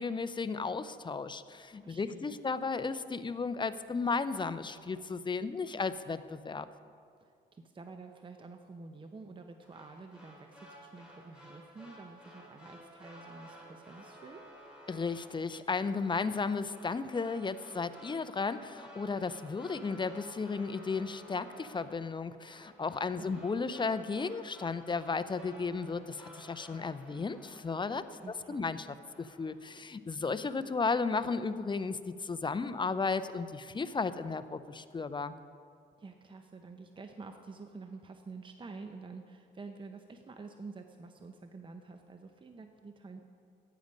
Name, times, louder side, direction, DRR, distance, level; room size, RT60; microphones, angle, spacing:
voice 1, 0.0-6.7 14.9-28.0 28.5-28.9 29.2-35.4, left 4 dB, 25° left, 12 dB, 0.6 m, -34 dB
voice 2, 1.7-2.4 7.2-14.4 23.3-23.4 28.2-28.6 36.0-43.2, right 4 dB, 25° right, 6 dB, 0.8 m, -49 dB
Horns that smack you in the face, 9.6-28.7 29.0-29.6, right 1 dB, 5° right, 3.5 m, -54 dB
14.5 x 9.5 x 5.2 m, 2.3 s
cardioid pair, 90°, 20 cm